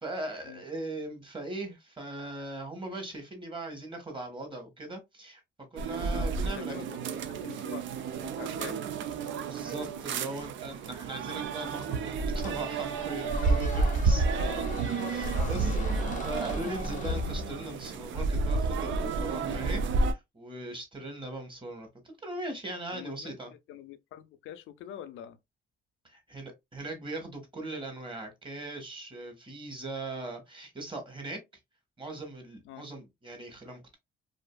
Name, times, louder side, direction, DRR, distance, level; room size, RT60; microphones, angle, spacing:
voice 1, 0.0-5.4 5.7-6.7 9.4-14.2 15.1-21.9 22.2-23.5 26.0-31.4 32.0-34.0, right 2 dB, 25° right, 1.2 m, -39 dB
sound 1, 5.8-20.1, right 4 dB, 70° right, 0.5 m, -30 dB
voice 2, 6.6-7.0 7.3-7.8 8.2-9.1 13.6-13.7 14.4-14.6 15.3-15.5 22.9-25.4 32.6-32.9, left 10 dB, 85° left, 0.5 m, -45 dB
Squeak, 12.4-17.9, left 5 dB, 40° left, 0.6 m, -40 dB
2.6 x 2.5 x 2.2 m
cardioid pair, 90°, 20 cm